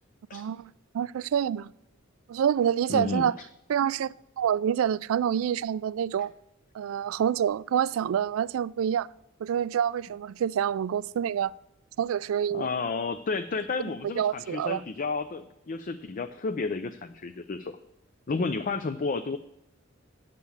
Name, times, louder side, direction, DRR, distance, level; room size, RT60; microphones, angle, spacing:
voice 1, 0.3-1.7 2.3-3.4 3.7-6.3 6.7-9.1 9.4-11.5 12.0-12.7 14.2-14.8, right 9 dB, 85° right, 0.3 m, -27 dB
voice 2, 2.9-3.5 12.5-17.8 18.3-19.4, left 4 dB, 40° left, 0.5 m, -31 dB
9.2 x 6.7 x 7.1 m
head